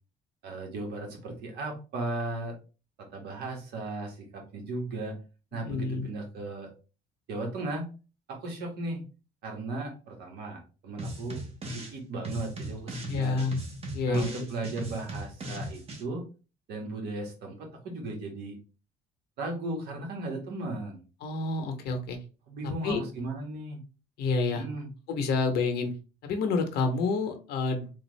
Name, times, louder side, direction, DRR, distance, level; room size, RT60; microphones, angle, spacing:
voice 1, 0.4-2.5 3.1-5.1 5.5-6.7 7.3-7.9 8.3-9.0 9.4-11.4 11.7-13.4 14.1-16.2 16.7-18.6 19.4-21.0 22.5-23.8 24.5-24.9, right 2 dB, 70° right, 1 dB, 1.3 m, -36 dB
voice 2, 5.6-6.1 13.1-13.6 13.9-14.4 21.2-22.2 22.6-23.0 24.2-24.6 25.1-25.9 26.2-27.9, left 4 dB, 70° left, 5 dB, 0.7 m, -28 dB
sound 1, 11.0-12.0 12.2-16.0, right 1 dB, 35° right, 1.0 m, -38 dB
3.4 x 2.4 x 3.1 m, 0.33 s
cardioid pair, 110°, 17 cm